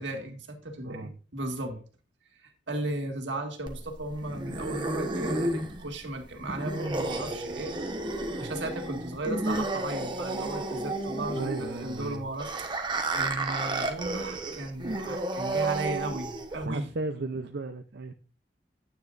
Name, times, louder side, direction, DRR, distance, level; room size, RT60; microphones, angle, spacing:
voice 1, 0.0-1.8 2.4-7.8 8.4-16.9, right 1 dB, 85° right, 4 dB, 1.9 m, -36 dB
voice 2, 0.8-1.2 1.7-1.8 11.3-12.3 16.6-18.1, right 3 dB, 65° right, 6 dB, 0.6 m, -35 dB
sound 1, 3.7-16.7, right 2 dB, 25° right, 1.1 m, -32 dB
9.6 x 9.2 x 2.5 m, 0.37 s
head